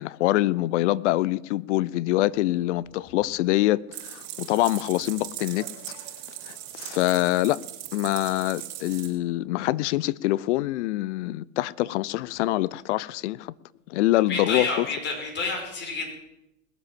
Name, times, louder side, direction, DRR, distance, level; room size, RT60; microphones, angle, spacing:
voice 1, 0.0-6.0 6.5-7.6 7.9-13.5 13.9-14.9, left 16 dB, 60° left, 0.6 m, -25 dB
sound 1, 3.9-9.1, right 12 dB, 50° right, 4.6 m, -39 dB
voice 2, 14.3-16.1, left 3 dB, 25° left, 5.4 m, -29 dB
20.5 x 7.5 x 7.5 m
hypercardioid pair, 125°, 41 cm